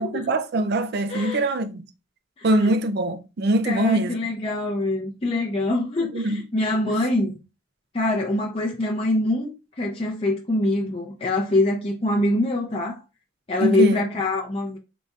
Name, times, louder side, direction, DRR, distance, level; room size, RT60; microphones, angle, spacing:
voice 1, 0.0-1.8 2.4-4.1 6.0-6.4 6.9-7.0 13.6-14.0, right 1 dB, 55° right, 0.4 m, -23 dB
voice 2, 1.1-1.4 2.4-2.7 3.6-7.3 7.9-13.0 13.5-14.8, left 2 dB, 30° left, 0.6 m, -24 dB
4.0 x 3.3 x 2.4 m
head